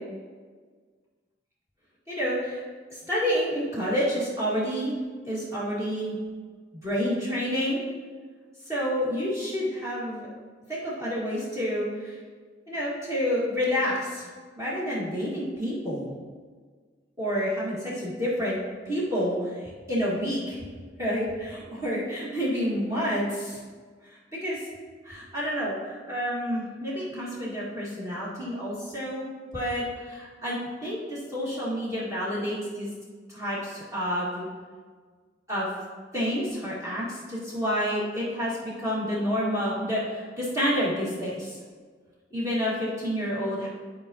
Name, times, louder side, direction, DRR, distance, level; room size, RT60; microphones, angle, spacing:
voice 1, 2.1-2.6 2.9-5.0 5.2-6.2 6.8-7.8 8.7-10.3 10.7-12.1 12.7-14.3 14.6-16.1 17.2-18.6 18.8-20.6 21.0-23.6 24.1-24.6 25.0-29.3 29.5-30.6 30.8-32.9 33.3-34.5 35.5-35.7 36.1-41.6 42.3-43.7, equal, 15° right, -8 dB, 1.5 m, -29 dB
10.5 x 4.5 x 2.7 m, 1.5 s
head